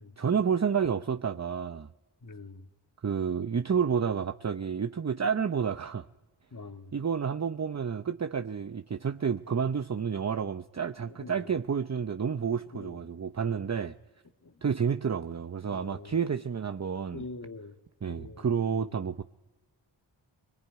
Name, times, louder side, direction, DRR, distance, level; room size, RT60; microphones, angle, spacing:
voice 1, 0.2-1.9 3.0-6.1 6.9-14.0 14.6-17.2 18.0-19.2, right 6 dB, 35° right, 0.8 m, -30 dB
voice 2, 2.2-2.7 6.5-6.9 11.1-11.5 12.7-13.0 14.4-14.5 15.7-16.2 17.1-17.7 18.1-18.9, left 3 dB, 35° left, 1.9 m, -44 dB
24.5 x 21.5 x 9.2 m
cardioid pair, 45°, 50 cm